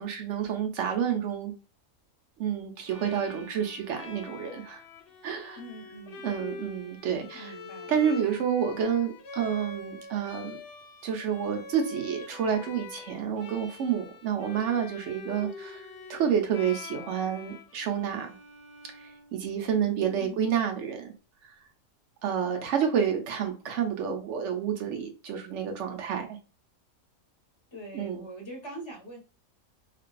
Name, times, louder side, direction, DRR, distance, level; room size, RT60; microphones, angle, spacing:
voice 1, 0.0-1.5 2.4-4.8 5.2-5.6 6.2-7.5 7.9-10.6 11.0-18.4 19.3-21.1 22.2-26.4 27.9-28.2, right 8 dB, 65° right, 0.9 m, -29 dB
Bowed string instrument, 2.8-19.8, left 4 dB, 65° left, 0.6 m, -45 dB
voice 2, 5.6-6.2 7.3-7.9 20.2-20.4 27.7-29.2, right 1 dB, 25° left, 0.9 m, -43 dB
2.5 x 2.3 x 2.3 m
omnidirectional pair, 1.4 m